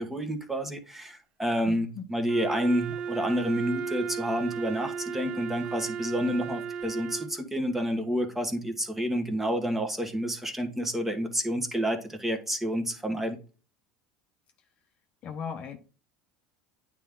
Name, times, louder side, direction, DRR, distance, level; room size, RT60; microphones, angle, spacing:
voice 1, 0.0-13.4, equal, 10° right, 1.5 m, -29 dB
voice 2, 1.7-2.0 15.2-15.8, left 6 dB, 45° left, 0.9 m, -37 dB
Wind instrument woodwind instrument, 2.3-7.4, right 6 dB, 50° right, 0.6 m, -35 dB
8.9 x 3.6 x 3.8 m
hypercardioid pair, 75°, 3 cm